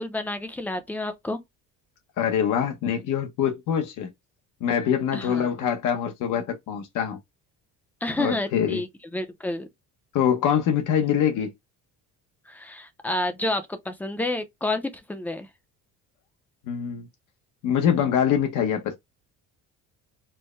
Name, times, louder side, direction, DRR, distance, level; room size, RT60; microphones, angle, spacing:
voice 1, 0.0-1.4 5.1-5.5 8.0-9.7 12.5-15.5, left 1 dB, 5° left, 0.5 m, -30 dB
voice 2, 2.2-4.1 4.6-7.2 8.2-8.8 10.1-11.5 16.7-17.1 17.6-19.0, left 8 dB, 70° left, 0.9 m, -24 dB
4.5 x 2.1 x 3.1 m
cardioid pair, 155°, 33 cm